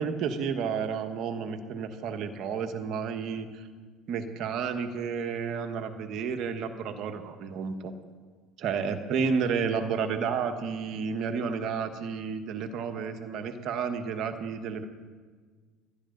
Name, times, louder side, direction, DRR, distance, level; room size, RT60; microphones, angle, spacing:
voice 1, 0.0-3.7 4.1-7.9 8.6-14.9, right 6 dB, 55° right, 7 dB, 1.4 m, -31 dB
21.0 x 12.5 x 4.0 m, 1.5 s
supercardioid pair, 90°, 0 cm